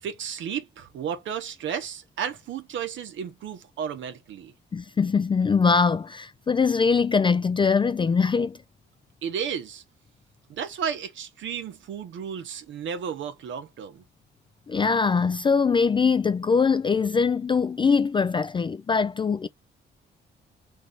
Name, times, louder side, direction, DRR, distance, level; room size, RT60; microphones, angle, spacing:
voice 1, 0.0-4.5 9.2-9.8 10.5-14.0, right 8 dB, 70° right, 1.0 m, -33 dB
voice 2, 4.7-8.6 14.7-19.5, left 5 dB, 25° left, 0.4 m, -22 dB
3.1 x 2.7 x 3.7 m
cardioid pair, 90°, 20 cm